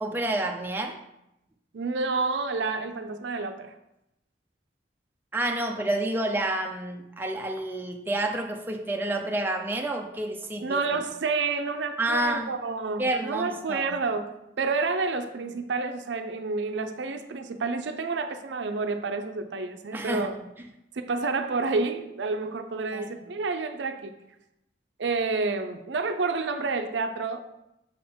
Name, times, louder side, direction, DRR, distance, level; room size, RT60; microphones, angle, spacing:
voice 1, 0.0-1.0 5.3-11.0 12.0-12.5 13.0-14.0 19.9-20.3 22.9-23.1, right 1 dB, 10° right, 2 dB, 0.4 m, -29 dB
voice 2, 1.7-3.7 10.6-20.3 21.0-24.1 25.0-27.4, right 4 dB, 75° right, 8 dB, 0.5 m, -29 dB
6.6 x 3.6 x 4.3 m, 0.86 s
head